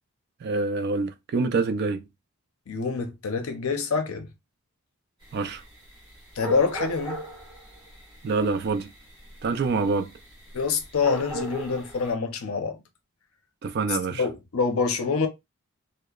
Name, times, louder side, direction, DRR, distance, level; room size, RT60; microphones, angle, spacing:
voice 1, 0.4-2.1 5.3-5.6 8.2-8.9 9.4-10.1 13.6-14.3, right 4 dB, 45° right, 0.3 m, -26 dB
voice 2, 2.7-4.3 6.4-7.2 10.5-12.8 14.1-15.3, left 4 dB, 75° left, 0.6 m, -26 dB
sound 1, 5.2-12.1, right 1 dB, 20° right, 1.2 m, -39 dB
2.7 x 2.0 x 2.3 m
head